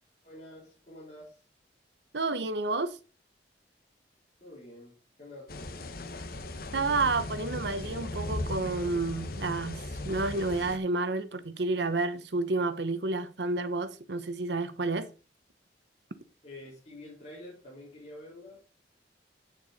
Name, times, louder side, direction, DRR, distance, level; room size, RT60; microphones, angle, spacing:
voice 1, 0.2-1.4 4.4-5.9 16.4-18.6, left 1 dB, 40° left, 4.2 m, -48 dB
voice 2, 2.1-3.0 6.7-15.1, right 3 dB, 70° right, 1.0 m, -30 dB
sound 1, 5.5-10.8, left 2 dB, 55° left, 1.0 m, -37 dB
9.2 x 6.9 x 4.1 m
head